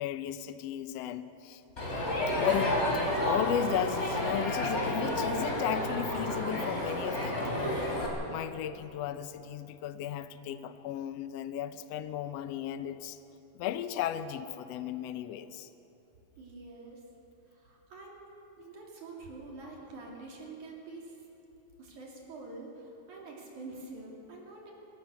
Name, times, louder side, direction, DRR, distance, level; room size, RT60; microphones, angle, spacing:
voice 1, 0.0-1.6 2.4-2.8 3.2-7.8 8.3-13.2 13.5-15.7, left 10 dB, 80° left, 11 dB, 1.4 m, -35 dB
Crowd, 1.8-8.1, left 1 dB, 20° left, 3.3 m, -30 dB
voice 2, 16.4-17.0 17.5-18.3 18.6-21.1 21.8-24.7, right 3 dB, 65° right, -2 dB, 4.2 m, -46 dB
21.5 x 17.5 x 6.9 m, 2.9 s
omnidirectional pair, 3.8 m